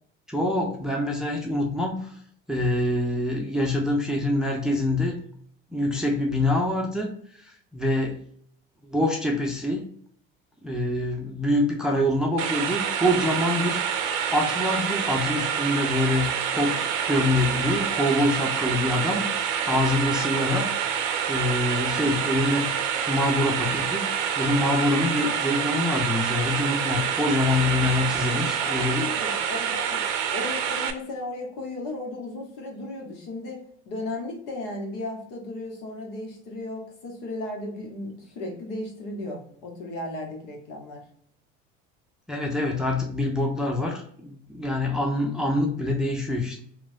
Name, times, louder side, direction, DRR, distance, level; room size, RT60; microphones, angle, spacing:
voice 1, 0.3-2.2 2.5-5.2 5.7-8.2 8.9-9.9 10.6-19.3 19.7-20.7 21.3-22.7 23.1-29.1 42.3-46.6, left 1 dB, ahead, 0 dB, 0.6 m, -25 dB
sound 1, 12.4-30.9, right 8 dB, 60° right, 0.6 m, -27 dB
voice 2, 28.3-30.0 30.3-41.1, left 2 dB, 60° left, 1 dB, 1.2 m, -35 dB
3.0 x 2.4 x 2.6 m, 0.62 s
hypercardioid pair, 80°, 35 cm